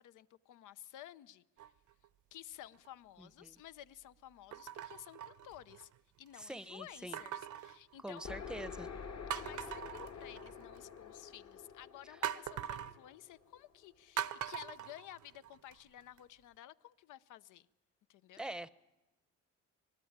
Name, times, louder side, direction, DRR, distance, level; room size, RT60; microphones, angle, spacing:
voice 1, 0.0-1.4 2.3-5.9 6.2-8.3 9.3-17.7 18.1-18.4, left 13 dB, 85° left, 15 dB, 0.7 m, -53 dB
sound 1, 1.6-2.1 2.7-2.9 4.5-6.0 7.1-8.5 8.9-9.0 9.3-10.8 12.2-13.0 14.2-15.7 16.2-16.3, right 10 dB, 75° right, 0.8 m, -42 dB
voice 2, 3.2-3.5 6.4-7.2 8.0-8.9 18.4-18.7, right 1 dB, 5° right, 16 dB, 0.7 m, -44 dB
sound 2, 8.2-13.9, left 6 dB, 55° left, 1.8 m, -48 dB
26.0 x 19.0 x 8.8 m, 1.1 s
cardioid pair, 90°, 30 cm